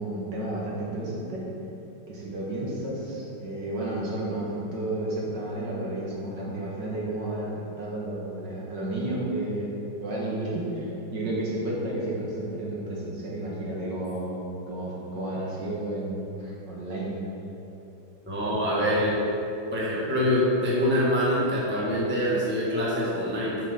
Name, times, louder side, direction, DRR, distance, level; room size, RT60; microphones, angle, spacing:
voice 1, 0.0-1.4 2.1-7.5 7.8-17.2, right 1 dB, 55° right, -5 dB, 2.2 m, -32 dB
voice 2, 18.2-19.2 19.7-23.6, equal, 5° right, -6 dB, 1.1 m, -25 dB
7.0 x 6.7 x 5.1 m, 2.9 s
omnidirectional pair, 2.3 m